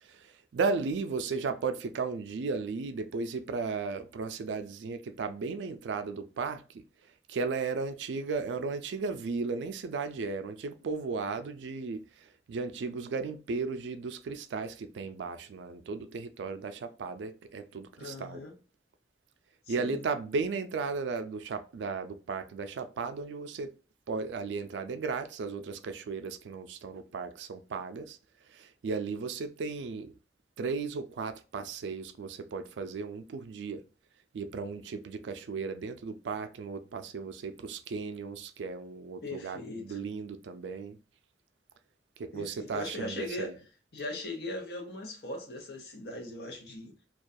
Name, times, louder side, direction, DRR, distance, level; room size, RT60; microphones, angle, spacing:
voice 1, 0.0-6.8 7.3-18.4 19.7-23.7 24.1-28.2 28.5-30.1 30.6-33.8 34.3-41.0 42.2-43.5, right 4 dB, 80° right, 0.4 m, -35 dB
voice 2, 18.0-18.6 19.7-20.0 39.2-40.0 42.3-43.5 43.9-47.0, left 2 dB, 60° left, 0.7 m, -39 dB
2.3 x 2.2 x 2.5 m
head